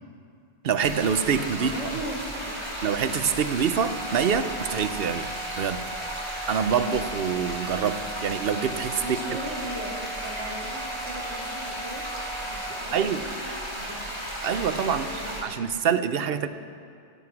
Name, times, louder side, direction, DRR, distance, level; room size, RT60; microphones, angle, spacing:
voice 1, 0.6-1.7 2.8-5.8 6.5-9.0 12.9-13.2 14.4-15.1 15.4-16.5, right 7 dB, 60° right, 11 dB, 0.9 m, -25 dB
sound 1, 0.8-15.4, equal, 25° right, 4.8 m, -35 dB
voice 2, 1.5-2.6 9.0-12.0 12.4-14.1 14.9-15.6, right 1 dB, 85° right, -2 dB, 3.0 m, -38 dB
sound 2, 3.8-12.8, right 2 dB, 5° left, 0.7 m, -40 dB
16.0 x 13.0 x 6.0 m, 2.4 s
omnidirectional pair, 1.1 m